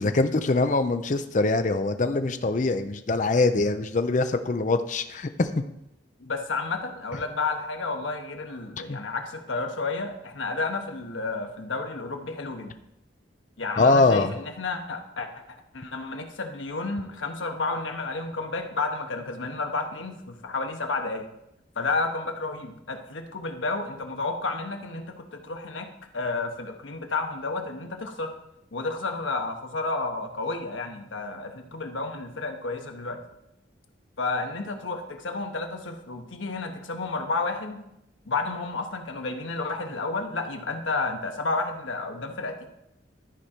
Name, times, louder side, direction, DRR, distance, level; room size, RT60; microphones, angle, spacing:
voice 1, 0.0-5.5 8.9-9.0 13.8-14.3, left 3 dB, 40° left, 9 dB, 0.5 m, -23 dB
voice 2, 6.2-12.7 13.6-21.3 21.8-25.9 26.1-28.3 28.7-33.2 34.2-37.8 38.2-42.7, left 3 dB, 85° left, 5 dB, 1.1 m, -31 dB
12.5 x 4.9 x 4.4 m, 0.83 s
head